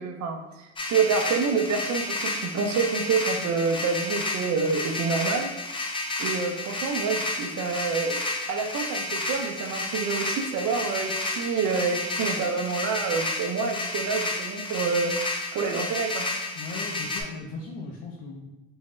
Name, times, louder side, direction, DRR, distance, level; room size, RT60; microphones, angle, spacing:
voice 1, 0.0-5.5 6.2-16.3, right 5 dB, 55° right, 3 dB, 0.6 m, -27 dB
sound 1, 0.8-17.2, left 2 dB, 15° left, 0.5 m, -31 dB
voice 2, 16.5-18.5, left 3 dB, 65° left, -1 dB, 0.7 m, -38 dB
3.1 x 2.7 x 3.2 m, 1.0 s
supercardioid pair, 90°, 33 cm